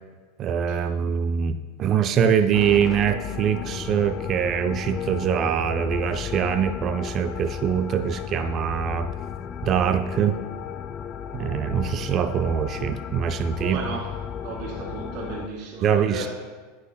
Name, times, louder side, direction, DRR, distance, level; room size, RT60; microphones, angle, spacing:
voice 1, 0.4-9.1 9.6-10.4 11.3-13.8 15.8-16.3, right 8 dB, 40° right, 9 dB, 0.4 m, -23 dB
sound 1, 2.5-15.5, left 8 dB, 35° left, 0.4 m, -34 dB
voice 2, 13.5-14.1 14.4-16.3, right 3 dB, 55° right, -2 dB, 2.3 m, -34 dB
10.5 x 8.1 x 2.2 m, 1.4 s
hypercardioid pair, 90°, 0 cm